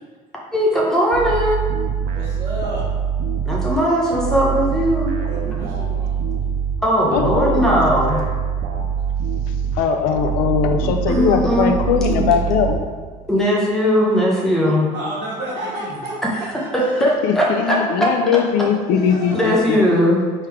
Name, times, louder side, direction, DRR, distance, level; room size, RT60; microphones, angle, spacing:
voice 1, 0.5-1.6 3.5-5.1 6.8-8.2 11.1-11.7 12.0-12.3 13.3-14.9 16.7-18.1 19.3-20.2, equal, 5° left, -4 dB, 0.7 m, -18 dB
sound 1, 1.1-13.3, right 7 dB, 65° right, 0.6 m, -24 dB
voice 2, 2.1-2.8 5.3-6.2 8.8-9.1 14.9-17.0 18.9-19.6, right 1 dB, 45° right, -10 dB, 1.2 m, -31 dB
voice 3, 7.1-7.8 9.7-12.8 13.8-14.0 17.2-19.8, left 7 dB, 85° left, 6 dB, 0.5 m, -20 dB
3.6 x 3.3 x 4.4 m, 1.5 s
cardioid pair, 165°, 15 cm